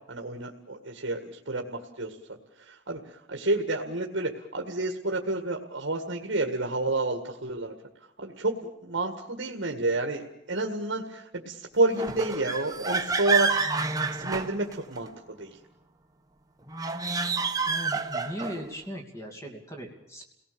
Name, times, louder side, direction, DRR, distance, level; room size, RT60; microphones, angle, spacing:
voice 1, 0.1-2.2 2.6-7.7 8.2-8.5 8.8-10.2 10.5-13.6 14.1-15.5, right 2 dB, 65° right, 2 dB, 1.9 m, -29 dB
sound 1, 11.9-15.1 16.7-18.7, right 4 dB, 20° right, 1.3 m, -28 dB
voice 2, 17.7-20.2, equal, 15° left, 2 dB, 2.8 m, -38 dB
29.5 x 19.0 x 6.9 m, 0.83 s
head